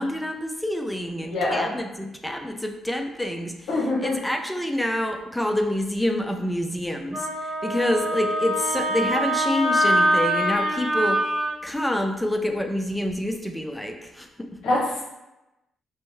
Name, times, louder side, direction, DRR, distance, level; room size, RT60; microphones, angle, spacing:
voice 1, 0.0-3.7 4.0-11.3 11.6-14.6, left 1 dB, 5° left, 5 dB, 0.3 m, -27 dB
voice 2, 1.3-1.7 3.7-4.1 14.6-15.0, left 2 dB, 75° left, -3 dB, 0.9 m, -24 dB
Wind instrument woodwind instrument, 7.1-11.5, equal, 40° right, 0.7 m, -24 dB
2.7 x 2.1 x 3.0 m, 0.95 s
cardioid pair, 90°, 0 cm